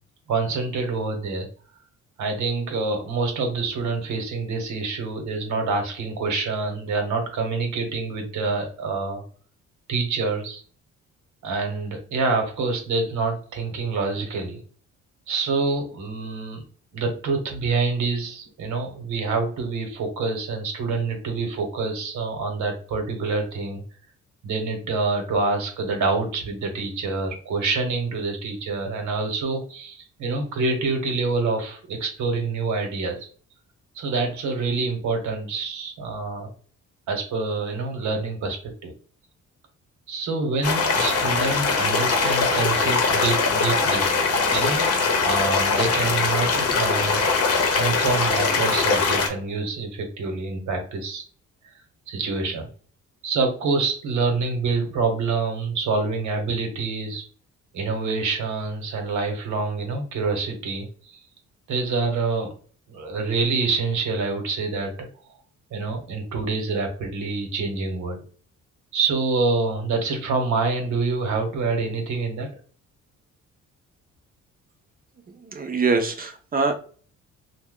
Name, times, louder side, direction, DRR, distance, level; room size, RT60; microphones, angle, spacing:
voice 1, 0.3-1.5 2.2-9.2 9.9-10.6 11.4-14.6 15.3-16.6 16.9-23.8 24.4-33.2 33.9-36.5 37.1-38.9 40.1-44.1 44.5-44.9 45.3-47.3 47.8-51.2 51.6-51.7 52.1-52.7 53.2-57.2 57.7-61.2 61.7-62.5 62.9-64.9 65.7-68.2 68.9-72.5, right 4 dB, 75° right, 4 dB, 1.0 m, -26 dB
sound 1, 40.6-49.3, left 4 dB, 50° left, 0.8 m, -22 dB
voice 2, 75.5-76.7, right 4 dB, 30° right, 6 dB, 0.6 m, -23 dB
2.7 x 2.2 x 3.6 m, 0.42 s
cardioid pair, 90°, 30 cm